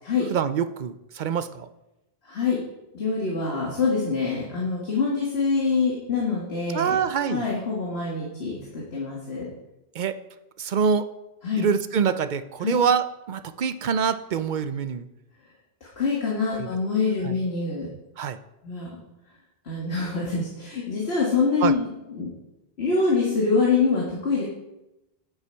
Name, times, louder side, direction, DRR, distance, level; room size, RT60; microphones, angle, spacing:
voice 1, 0.3-1.7 6.7-7.5 9.9-10.2 10.6-11.1 11.6-15.1 16.5-16.7 17.2-17.4 18.2-18.4 21.6-21.7, right 6 dB, 55° right, 12 dB, 0.7 m, -25 dB
voice 2, 2.3-2.6 2.9-7.0 7.3-9.5 11.4-11.7 12.6-12.7 16.0-17.9 18.6-18.9 19.7-21.9 22.2-22.3 22.8-24.4, left 4 dB, 85° left, -4 dB, 2.0 m, -25 dB
9.8 x 8.1 x 4.6 m, 0.92 s
omnidirectional pair, 1.0 m